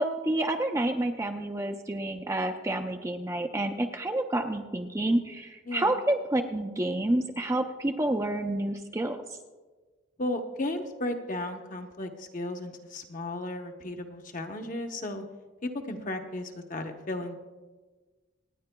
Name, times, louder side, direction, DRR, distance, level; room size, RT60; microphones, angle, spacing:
voice 1, 0.0-9.2, right 1 dB, 15° right, 4 dB, 0.4 m, -29 dB
voice 2, 5.7-6.0 10.2-15.2 15.6-17.3, left 1 dB, 40° left, 4 dB, 0.8 m, -34 dB
26.0 x 9.5 x 2.2 m, 1.3 s
head